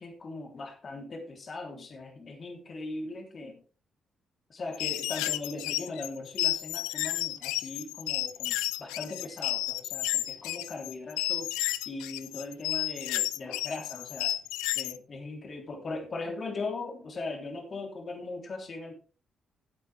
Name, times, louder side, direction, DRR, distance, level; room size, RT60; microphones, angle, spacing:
voice 1, 0.0-3.6 4.5-11.5 11.8-14.3 14.7-18.9, left 3 dB, 45° left, 2 dB, 3.2 m, -39 dB
sound 1, 4.7-15.0, left 16 dB, 80° left, 0.5 m, -32 dB
15.0 x 8.7 x 3.4 m, 0.37 s
hypercardioid pair, 40°, 0 cm